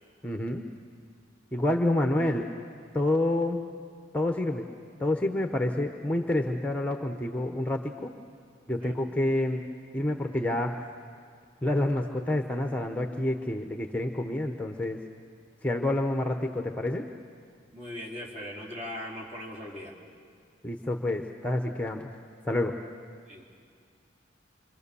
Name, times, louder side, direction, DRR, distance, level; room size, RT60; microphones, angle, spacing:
voice 1, 0.2-0.6 1.5-2.5 2.9-3.6 4.1-4.7 5.0-8.1 8.7-9.6 9.9-10.7 11.6-15.0 15.6-17.0 20.6-22.1 22.4-22.7, left 1 dB, 10° left, 4 dB, 0.9 m, -28 dB
voice 2, 17.7-20.0 23.3-23.4, left 1 dB, 35° right, -2 dB, 4.1 m, -39 dB
27.0 x 25.0 x 7.0 m, 2.1 s
head